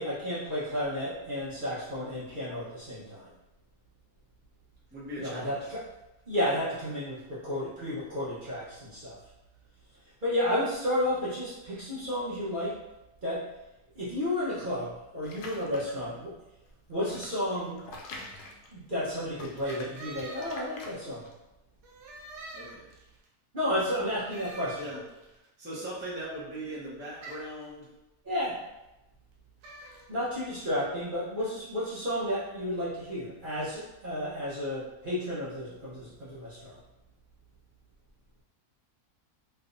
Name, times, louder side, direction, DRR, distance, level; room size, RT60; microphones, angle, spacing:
voice 1, 0.0-3.3 5.2-5.8 6.3-9.2 10.2-12.8 13.2-13.4 13.9-16.3 16.9-17.8 18.7-21.2 23.5-24.8 28.2-28.6 30.1-36.8, left 1 dB, 40° right, -10 dB, 0.8 m, -32 dB
voice 2, 4.9-5.6 22.5-22.9 24.8-25.0 25.6-27.9, right 1 dB, 10° right, -8 dB, 0.6 m, -39 dB
sound 1, 15.2-16.1 16.7-19.1 19.3-21.3, left 2 dB, 80° left, 1.1 m, -45 dB
sound 2, 19.7-21.3 21.8-23.2 24.3-25.4 27.2-27.6 29.6-30.1, right 2 dB, 80° right, 1.2 m, -46 dB
3.4 x 3.1 x 2.5 m, 0.95 s
omnidirectional pair, 1.7 m